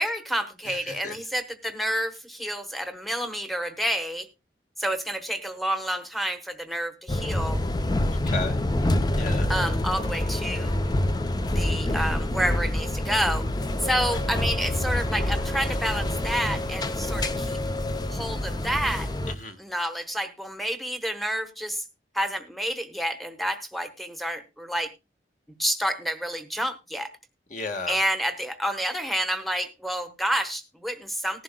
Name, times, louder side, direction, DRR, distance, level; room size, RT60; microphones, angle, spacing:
voice 1, 0.0-4.3 4.8-7.6 9.5-10.8 11.5-13.5 13.8-17.6 18.1-19.1 19.6-21.8 22.1-24.9 25.6-27.1 27.9-31.4, equal, ahead, 8 dB, 0.9 m, -29 dB
voice 2, 0.7-1.2 8.1-8.6 9.2-9.5 14.1-14.2 19.3-19.6 27.5-28.0, left 3 dB, 45° left, 6 dB, 1.3 m, -34 dB
sound 1, 7.1-19.4, left 1 dB, 25° left, 0.5 m, -27 dB
18.5 x 11.0 x 2.2 m, 0.26 s
head